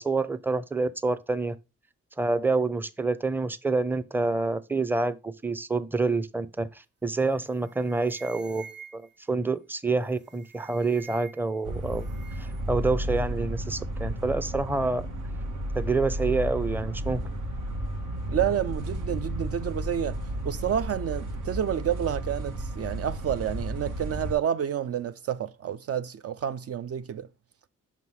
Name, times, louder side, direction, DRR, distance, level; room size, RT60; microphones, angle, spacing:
voice 1, 0.0-1.6 2.2-6.7 7.0-12.1 12.4-15.1 15.7-17.2, right 3 dB, 5° right, 0.6 m, -27 dB
sound 1, 7.1-7.3 7.6-9.3 10.1-11.6 11.8-12.6, right 6 dB, 35° right, 1.0 m, -48 dB
sound 2, 11.6-24.4, right 1 dB, 80° right, 1.2 m, -33 dB
voice 2, 18.3-20.2 20.4-27.3, right 9 dB, 55° right, 0.5 m, -29 dB
5.7 x 3.0 x 5.5 m
supercardioid pair, 50°, 30 cm